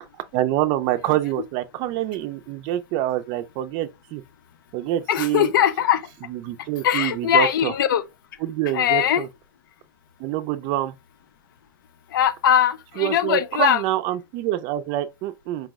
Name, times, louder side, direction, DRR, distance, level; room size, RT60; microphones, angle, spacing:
voice 1, 0.3-4.2 4.7-5.5 6.3-7.7 8.4-9.3 10.2-10.9 13.0-15.7, right 13 dB, 45° right, 0.4 m, -26 dB
voice 2, 5.1-6.1 6.8-8.0 8.7-9.3 12.1-13.8, left 10 dB, 70° left, 0.6 m, -20 dB
4.6 x 2.0 x 3.5 m
hypercardioid pair, 125°, 11 cm